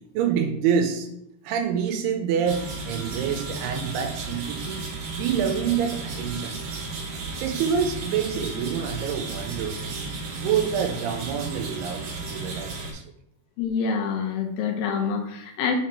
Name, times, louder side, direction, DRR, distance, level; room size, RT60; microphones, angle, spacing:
voice 1, 0.1-1.1 1.4-4.8 5.2-6.6 7.4-9.8 10.3-13.0, right 7 dB, 80° right, 5 dB, 2.7 m, -27 dB
sound 1, 2.4-12.9, right 3 dB, 60° right, 2.0 m, -34 dB
voice 2, 13.6-15.8, left 6 dB, 80° left, 4 dB, 2.1 m, -26 dB
6.5 x 5.0 x 4.4 m, 0.78 s
omnidirectional pair, 4.8 m